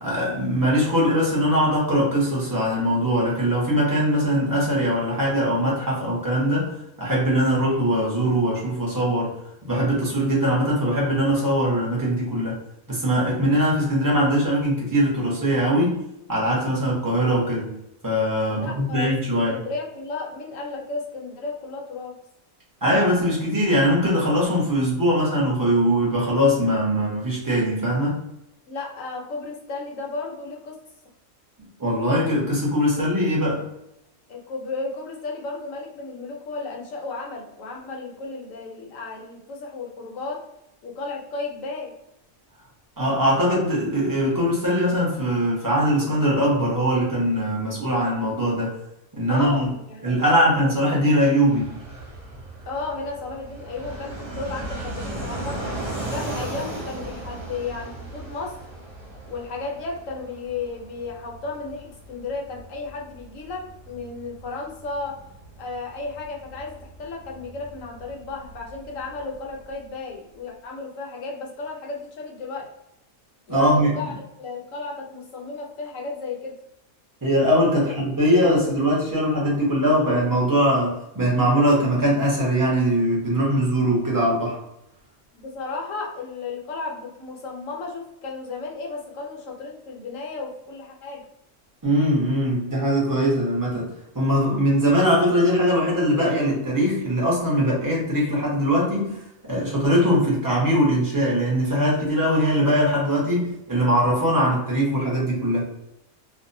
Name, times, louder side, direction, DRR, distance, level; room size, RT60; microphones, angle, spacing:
voice 1, 0.0-6.7 7.0-9.3 9.6-12.6 12.9-16.0 16.3-17.7 18.0-19.6 22.8-28.2 31.8-33.6 43.0-48.7 49.1-49.7 50.0-51.8 73.5-73.9 77.2-84.6 91.8-99.2 99.5-105.6, equal, 20° right, -5 dB, 0.5 m, -21 dB
voice 2, 18.5-19.1 19.4-22.1 28.7-30.8 34.3-40.4 40.8-41.9 49.3-50.7 52.7-55.7 56.1-58.6 59.3-65.2 65.6-72.7 73.5-76.5 77.8-77.9 78.2-78.3 85.3-91.2, left 3 dB, 65° left, -1 dB, 1.0 m, -34 dB
Fixed-wing aircraft airplane, 51.5-69.8, right 2 dB, 50° right, 0.9 m, -37 dB
2.6 x 2.1 x 2.6 m, 0.84 s
omnidirectional pair, 1.5 m